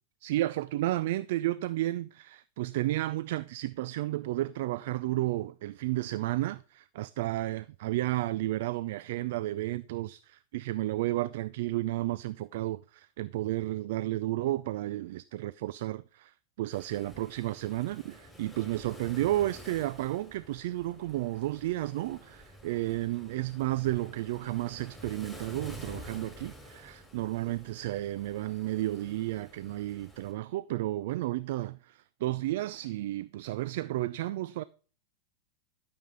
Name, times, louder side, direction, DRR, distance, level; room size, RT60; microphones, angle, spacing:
voice 1, 0.2-34.6, right 16 dB, 65° right, 0.4 m, -32 dB
Waves surf, 16.7-30.3, equal, ahead, 4.4 m, -50 dB
12.0 x 6.9 x 3.7 m
hypercardioid pair, 100°, 0 cm